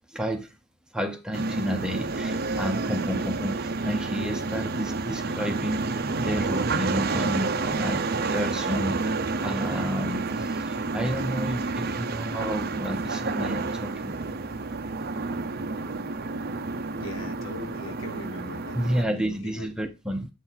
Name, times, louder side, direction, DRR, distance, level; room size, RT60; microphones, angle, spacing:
voice 1, 0.1-0.5 0.9-14.2 18.7-20.3, equal, 5° right, 0.7 m, -31 dB
sound 1, 1.3-19.1, right 3 dB, 45° right, 0.6 m, -29 dB
voice 2, 17.0-19.7, left 1 dB, 60° left, 1.0 m, -41 dB
8.1 x 4.4 x 4.0 m
head